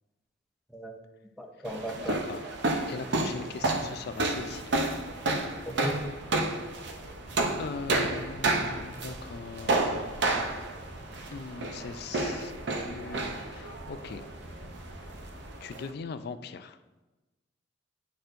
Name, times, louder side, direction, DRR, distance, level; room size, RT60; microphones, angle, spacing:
voice 1, 1.4-2.1 5.7-6.0, right 1 dB, ahead, 3 dB, 0.6 m, -36 dB
sound 1, 1.6-15.9, right 2 dB, 65° right, 0.6 m, -31 dB
voice 2, 2.0-2.5 2.9-4.7 7.6-10.6 11.3-14.2 15.6-16.8, left 5 dB, 60° left, 11 dB, 0.4 m, -40 dB
sound 2, 4.2-15.5, equal, 90° right, 1.7 m, -48 dB
9.3 x 4.3 x 2.6 m, 1.1 s
head